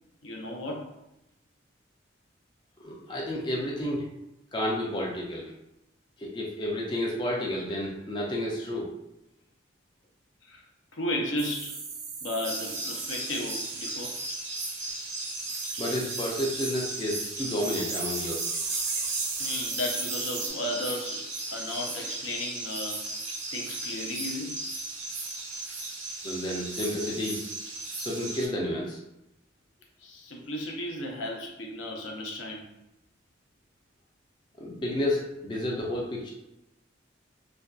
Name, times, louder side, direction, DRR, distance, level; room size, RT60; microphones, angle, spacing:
voice 1, 0.2-0.9 10.4-10.6 10.9-11.8 12.2-14.2 19.4-21.2 21.5-23.0 23.5-24.6 30.0-32.7, left 1 dB, 80° left, 0 dB, 0.5 m, -34 dB
voice 2, 2.8-4.0 4.5-5.5 6.2-8.9 15.8-18.4 26.2-27.4 28.0-29.0 34.6-36.3, left 1 dB, 25° left, -3 dB, 0.3 m, -31 dB
sound 1, 11.4-13.9 14.9-20.5, right 4 dB, 55° right, 0.4 m, -36 dB
sound 2, 12.4-28.5, right 2 dB, 90° right, 0.7 m, -36 dB
2.5 x 2.2 x 2.2 m, 0.88 s
head